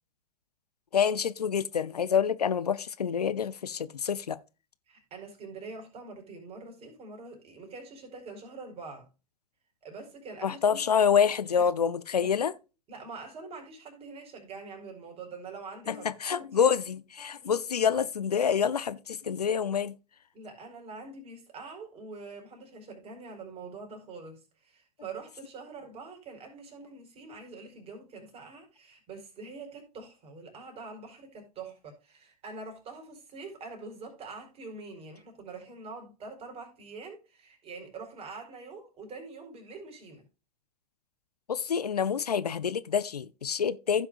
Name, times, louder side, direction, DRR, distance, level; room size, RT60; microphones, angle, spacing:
voice 1, 0.9-4.4 10.4-12.5 15.9-19.9 41.5-44.1, left 7 dB, 80° left, 0.6 m, -27 dB
voice 2, 4.9-9.1 9.8-11.0 11.5-11.7 12.2-12.5 12.9-16.6 17.3-17.5 20.3-40.2, right 4 dB, 30° right, 4.2 m, -45 dB
15.5 x 6.0 x 2.4 m
figure-of-eight pair, 90°, 20 cm